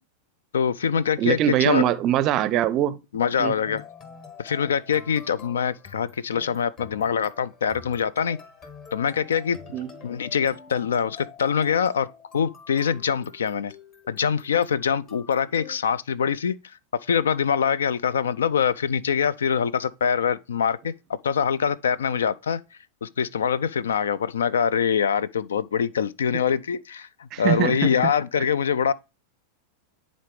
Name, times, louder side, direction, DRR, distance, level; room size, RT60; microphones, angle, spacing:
voice 1, 0.5-1.8 3.1-3.8 4.4-8.4 8.9-9.6 10.0-12.1 12.3-13.7 14.1-16.6 17.0-20.9 21.2-22.6 23.0-28.9, left 7 dB, 65° left, 0.3 m, -24 dB
voice 2, 1.2-3.0 3.4-3.5 9.7-9.9 27.3-27.9, right 12 dB, 35° right, 0.5 m, -22 dB
sound 1, 3.6-15.8, left 5 dB, 35° left, 1.6 m, -46 dB
10.0 x 4.0 x 3.1 m
figure-of-eight pair, 90°, 0 cm